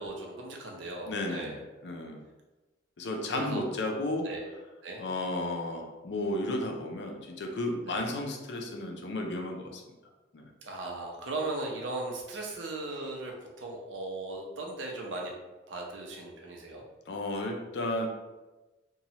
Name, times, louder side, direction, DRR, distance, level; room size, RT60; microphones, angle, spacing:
voice 1, 0.0-1.6 3.3-3.6 4.2-4.5 4.8-5.0 7.9-8.0 10.6-15.3 15.7-16.8, right 2 dB, 80° right, 0 dB, 0.6 m, -37 dB
voice 2, 1.0-1.5 1.8-2.2 3.0-4.3 5.0-9.9 10.3-10.5 17.1-18.1, left 1 dB, 65° left, 2 dB, 0.5 m, -33 dB
3.0 x 2.3 x 2.8 m, 1.1 s
head